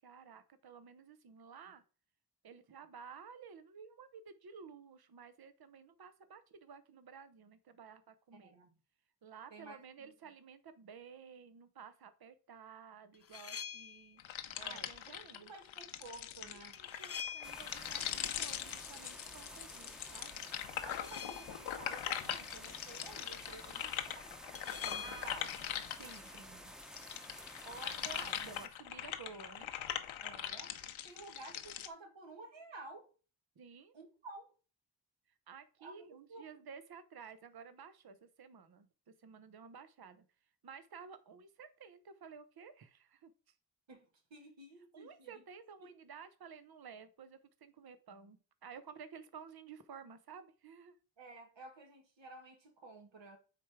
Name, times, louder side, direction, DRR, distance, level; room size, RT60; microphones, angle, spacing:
voice 1, 0.0-1.8 2.4-8.6 9.2-14.2 14.6-15.5 16.5-20.3 23.6-23.8 25.0-25.4 26.0-26.7 27.8-29.7 33.6-33.9 35.5-40.3 40.6-43.3 44.9-51.0, right 6 dB, 50° right, 1.0 m, -53 dB
voice 2, 8.3-8.7 9.5-10.1 14.6-16.8 20.8-24.4 24.8-25.5 27.6-28.3 30.2-30.7 31.0-33.1 33.9-34.5 35.8-36.5 43.9-45.3 45.8-45.9 51.2-53.4, right 2 dB, 70° right, 2.4 m, -52 dB
sound 1, 13.1-14.2 16.7-17.9 20.7-21.7 24.5-25.5, left 7 dB, 30° left, 0.5 m, -45 dB
sound 2, 14.2-26.4 26.8-31.9, left 10 dB, 80° left, 0.9 m, -42 dB
sound 3, 17.4-28.7, equal, ahead, 0.9 m, -52 dB
8.2 x 3.3 x 4.8 m
supercardioid pair, 40°, 46 cm